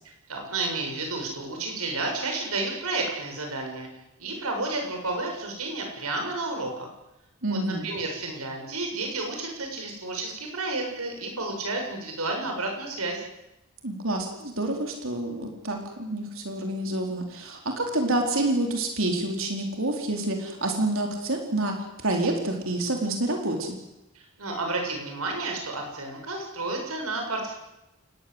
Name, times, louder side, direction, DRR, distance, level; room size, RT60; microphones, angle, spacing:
voice 1, 0.3-3.9 4.2-6.9 7.5-13.2 24.2-27.5, right 2 dB, 85° right, 2 dB, 7.3 m, -31 dB
voice 2, 7.4-7.9 13.8-21.7 22.0-23.8, right 1 dB, 65° right, 2 dB, 4.4 m, -28 dB
28.5 x 19.5 x 8.2 m, 0.91 s
head